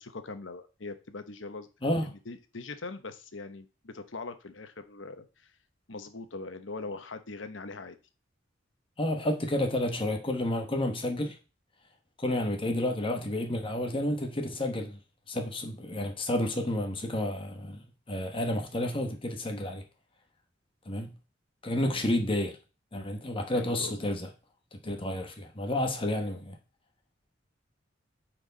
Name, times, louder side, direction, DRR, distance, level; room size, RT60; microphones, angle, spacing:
voice 1, 0.0-5.6 5.9-8.0 21.8-22.1 23.5-24.1, left 3 dB, 75° left, 1.1 m, -42 dB
voice 2, 9.0-11.4 12.2-15.0 15.3-19.8 20.9-21.1 21.6-22.6 22.9-24.3 24.7-26.6, left 1 dB, 30° left, 1.2 m, -30 dB
8.9 x 4.7 x 4.0 m
head